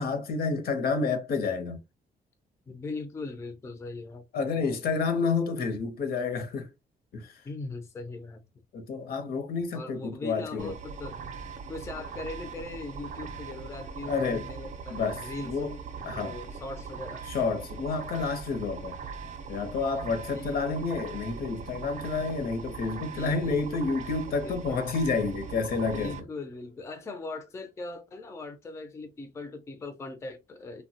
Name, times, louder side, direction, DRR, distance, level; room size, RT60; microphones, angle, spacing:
voice 1, 0.0-1.8 4.3-6.7 7.1-7.4 8.7-10.7 14.1-14.5 14.9-15.8 16.0-16.4 17.3-19.0 19.5-26.1, left 4 dB, 65° left, 0.6 m, -29 dB
voice 2, 2.7-4.8 7.4-8.4 9.7-11.2 11.7-15.7 16.1-17.2 20.3-20.8 23.0-23.6 24.4-24.8 25.9-30.8, left 3 dB, 15° left, 0.3 m, -40 dB
sound 1, 10.6-26.2, right 5 dB, 45° right, 0.5 m, -40 dB
sound 2, 23.2-28.5, equal, 80° left, 1.0 m, -53 dB
3.0 x 2.1 x 2.7 m
cardioid pair, 155°, 17 cm